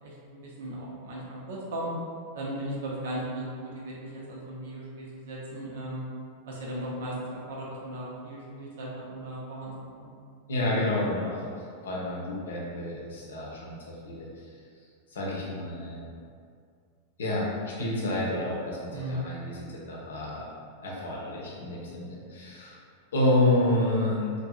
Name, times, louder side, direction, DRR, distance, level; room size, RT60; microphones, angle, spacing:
voice 1, 0.0-1.9 2.3-6.0 6.5-10.1 18.9-19.3, right 1 dB, 60° right, -5 dB, 0.5 m, -37 dB
voice 2, 10.5-11.5 11.8-14.3 15.1-16.0 17.2-20.4 20.8-22.8 23.1-24.3, left 1 dB, 65° left, -4 dB, 0.6 m, -29 dB
2.7 x 2.6 x 2.2 m, 2.2 s
figure-of-eight pair, 90°, 0 cm